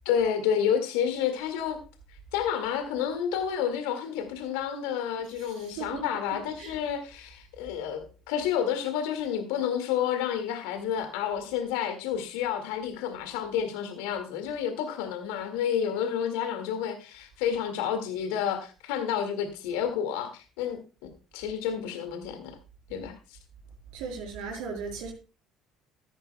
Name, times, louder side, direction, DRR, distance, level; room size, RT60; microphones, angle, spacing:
voice 1, 0.1-1.8 2.3-22.5 22.9-23.4, left 8 dB, 75° left, 2.0 m, -30 dB
voice 2, 5.3-6.8 23.9-25.1, right 5 dB, 75° right, 5.1 m, -38 dB
13.5 x 12.0 x 2.2 m
hypercardioid pair, 65°, 0 cm